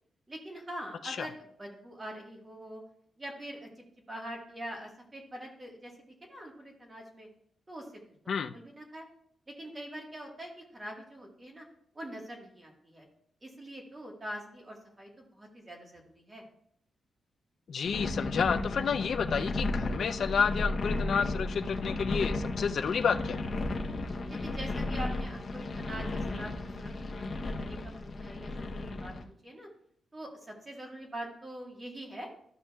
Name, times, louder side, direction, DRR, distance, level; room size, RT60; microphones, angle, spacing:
voice 1, 0.3-2.8 3.2-7.3 7.7-7.9 8.3-9.0 9.6-11.6 11.9-13.1 13.4-16.4 24.3-26.5 26.8-26.9 27.3-29.1 29.4-29.7 30.1-32.3, right 1 dB, 20° right, 0 dB, 1.4 m, -44 dB
voice 2, 17.7-23.4, left 6 dB, 55° left, 9 dB, 0.4 m, -30 dB
sound 1, 17.8-29.2, left 2 dB, 35° left, 0.9 m, -34 dB
12.5 x 6.2 x 2.3 m, 0.66 s
wide cardioid pair, 145°, 0 cm